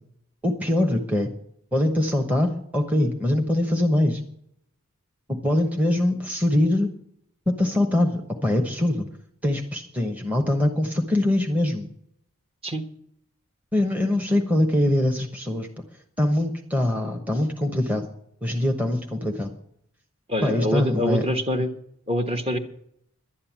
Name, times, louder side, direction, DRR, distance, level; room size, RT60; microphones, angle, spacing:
voice 1, 0.4-1.3 1.7-4.2 5.3-6.9 7.5-9.1 9.4-11.9 13.7-15.7 16.2-18.0 18.4-19.5 20.4-21.2, left 1 dB, 5° right, 4 dB, 1.1 m, -23 dB
voice 2, 20.3-21.7 22.1-22.6, equal, 25° right, 5 dB, 1.3 m, -25 dB
11.5 x 9.8 x 7.3 m, 0.72 s
head